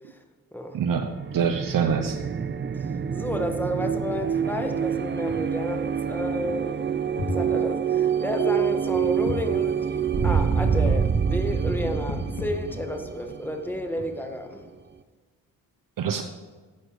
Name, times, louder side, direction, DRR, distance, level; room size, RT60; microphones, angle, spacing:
voice 1, 0.7-2.2 16.0-16.2, right 6 dB, 65° right, 7 dB, 0.9 m, -25 dB
sound 1, 0.9-14.4, right 7 dB, 30° right, 0.6 m, -27 dB
voice 2, 2.7-14.6, left 1 dB, 5° left, 4 dB, 1.7 m, -32 dB
sound 2, 5.0-5.4 5.9-6.0 6.3-6.8 7.1-7.5 8.9-9.5 9.8-11.2 11.7-13.1 13.9-14.8, left 2 dB, 60° left, 3.1 m, -34 dB
13.0 x 8.6 x 4.9 m, 1.4 s
cardioid pair, 85°, 36 cm